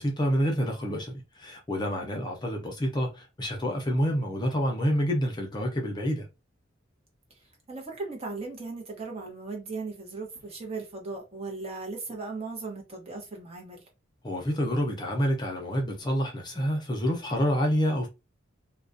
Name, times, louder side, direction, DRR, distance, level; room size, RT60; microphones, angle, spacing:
voice 1, 0.0-6.3 14.2-18.1, equal, 20° left, 0.6 m, -28 dB
voice 2, 7.4-13.9, right 3 dB, 30° right, 0.8 m, -37 dB
2.3 x 2.1 x 2.5 m
head